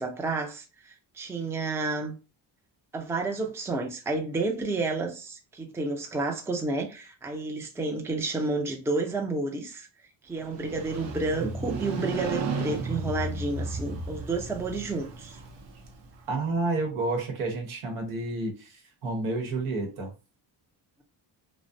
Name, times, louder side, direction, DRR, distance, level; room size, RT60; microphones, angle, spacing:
voice 1, 0.0-2.1 2.9-9.9 10.2-15.4, right 3 dB, 5° right, 0.4 m, -31 dB
Motorcycle, 10.4-16.3, right 3 dB, 60° right, 0.7 m, -34 dB
voice 2, 16.3-20.1, right 2 dB, 85° right, 1.0 m, -30 dB
2.4 x 2.1 x 2.6 m
cardioid pair, 80°, 48 cm